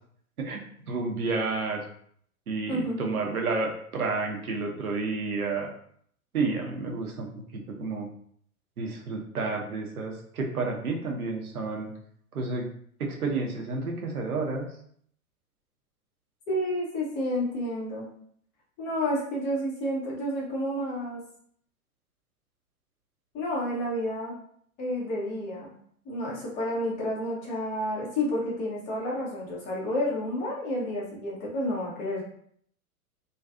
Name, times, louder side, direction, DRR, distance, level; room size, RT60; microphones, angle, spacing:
voice 1, 0.9-1.8 2.5-5.7 6.3-7.3 7.5-8.1 8.8-11.9 12.3-12.7 13.0-14.7, right 3 dB, 75° right, 1 dB, 0.7 m, -30 dB
voice 2, 2.7-3.1 16.5-18.1 18.8-21.2 23.3-24.3 24.8-25.7 26.1-32.2, left 1 dB, 15° left, -3 dB, 0.5 m, -30 dB
2.5 x 2.3 x 2.3 m, 0.64 s
figure-of-eight pair, 100°, 44 cm